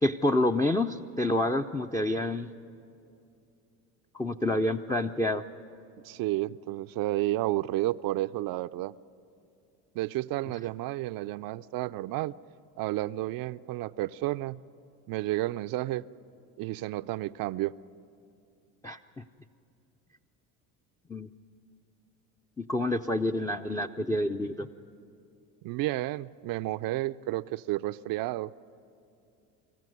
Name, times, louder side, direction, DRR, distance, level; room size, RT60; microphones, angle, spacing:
voice 1, 0.0-2.5 4.1-5.4 18.8-19.2 21.1-21.3 22.6-24.7, left 1 dB, 10° left, 2 dB, 0.5 m, -28 dB
voice 2, 6.0-8.9 9.9-12.4 12.8-14.6 15.1-16.0 16.6-17.8 25.6-28.5, right 16 dB, 50° right, 14 dB, 0.5 m, -31 dB
25.5 x 14.5 x 9.3 m, 2.6 s
hypercardioid pair, 75°, 44 cm